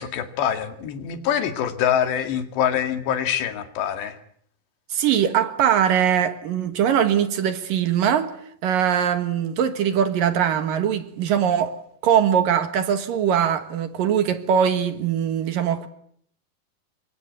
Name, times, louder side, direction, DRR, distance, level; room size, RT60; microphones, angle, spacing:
voice 1, 0.0-4.2, left 9 dB, 85° left, 4.4 m, -25 dB
voice 2, 4.9-8.3 8.6-11.8 12.0-15.9, right 9 dB, 65° right, 2.8 m, -21 dB
27.5 x 24.0 x 8.2 m
omnidirectional pair, 4.8 m